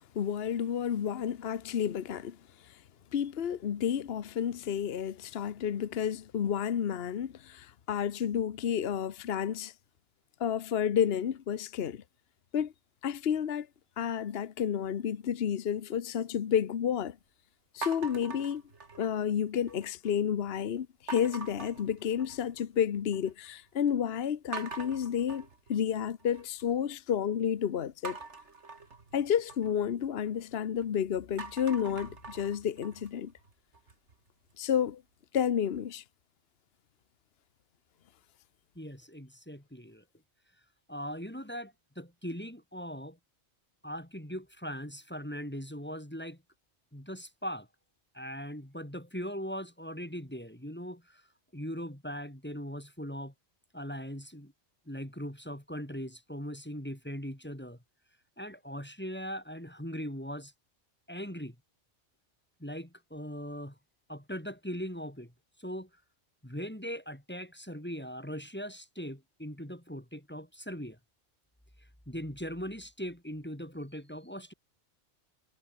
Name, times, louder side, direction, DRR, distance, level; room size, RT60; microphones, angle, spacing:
voice 1, 0.1-2.4 3.1-9.7 10.4-12.0 12.5-12.7 13.0-13.7 14.0-17.2 17.7-18.6 19.0-28.2 29.1-33.3 34.6-35.0 35.3-36.0, left 8 dB, 60° left, 1.1 m, -31 dB
sound 1, 17.8-19.3 19.7-20.2 21.1-22.6 22.9-23.5 23.9-24.0 24.5-26.6 28.0-30.8 31.2-34.1, right 4 dB, 75° right, 2.7 m, -44 dB
voice 2, 38.8-40.0 40.9-43.2 43.8-46.4 46.9-47.7 48.1-51.2 51.5-53.3 53.7-54.5 54.9-57.8 58.4-60.5 61.1-61.6 62.6-63.8 64.1-65.3 65.6-65.9 66.4-71.0 72.1-74.5, equal, 10° left, 3.7 m, -40 dB
omnidirectional pair, 1.2 m